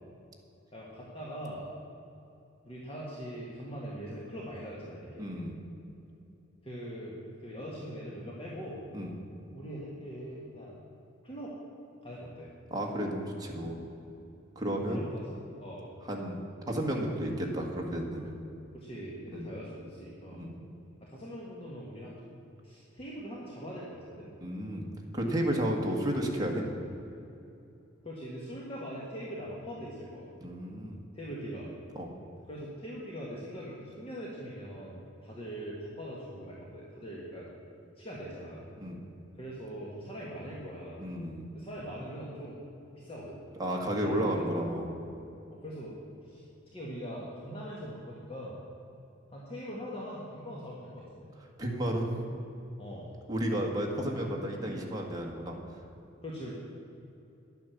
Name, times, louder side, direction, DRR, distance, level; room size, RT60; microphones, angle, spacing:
voice 1, 0.7-1.7 2.6-5.4 6.6-8.8 9.5-10.7 11.2-11.5 12.0-12.5 14.9-15.9 18.7-20.5 21.0-22.1 22.6-24.3 28.0-30.2 31.1-31.7 32.5-37.5 38.0-38.7 39.4-41.0 41.5-42.6 43.0-43.4 44.0-44.5 45.6-46.4 46.7-48.6 49.3-51.3 52.8-53.1 56.2-56.5, equal, 30° left, -5 dB, 1.7 m, -42 dB
voice 2, 5.2-5.6 8.9-9.1 12.7-13.9 14.5-15.0 16.1-16.4 16.7-18.3 19.3-19.5 20.3-20.6 24.4-24.9 25.1-26.6 30.4-31.0 31.9-32.1 38.8-39.0 41.0-41.4 43.6-44.9 51.6-52.3 53.3-55.6, right 1 dB, 20° right, -1 dB, 1.7 m, -32 dB
10.5 x 9.1 x 7.1 m, 2.8 s
head